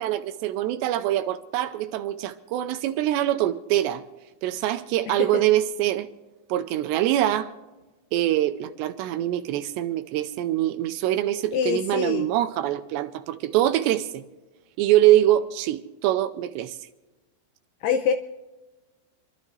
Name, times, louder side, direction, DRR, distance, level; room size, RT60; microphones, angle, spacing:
voice 1, 0.0-4.0 4.4-6.1 6.5-7.5 8.1-14.2 14.8-16.8, right 13 dB, 80° right, 2.6 m, -24 dB
voice 2, 11.5-12.3 17.8-18.1, left 7 dB, 85° left, 2.3 m, -24 dB
27.5 x 12.0 x 3.2 m
omnidirectional pair, 5.5 m